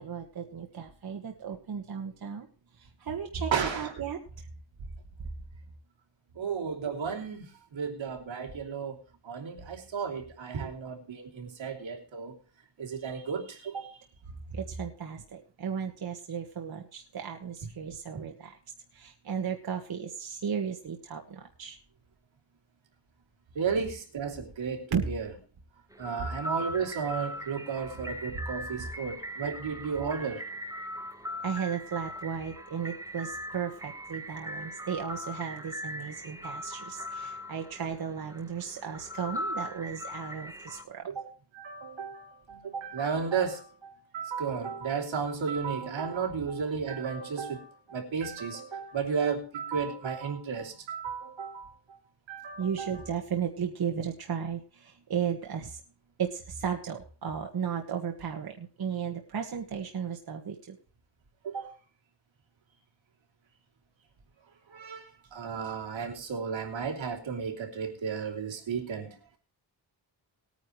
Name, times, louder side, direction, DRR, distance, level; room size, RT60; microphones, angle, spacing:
voice 1, 0.0-2.5 2.8-4.5 14.5-18.6 18.9-21.8 24.9-25.0 31.4-41.1 52.6-55.8 56.2-60.8, right 7 dB, 55° right, 3 dB, 1.5 m, -35 dB
voice 2, 3.5-3.9 6.3-7.5 7.7-9.0 9.2-12.3 12.8-13.9 18.1-18.2 23.5-25.3 26.0-30.4 41.1-41.3 41.5-52.0 52.3-53.0 61.4-61.7 64.7-69.2, right 6 dB, 90° right, 2 dB, 3.1 m, -33 dB
sound 1, 25.9-40.8, equal, 10° right, 0.8 m, -40 dB
20.0 x 9.5 x 3.2 m, 0.38 s
wide cardioid pair, 170°, 45 cm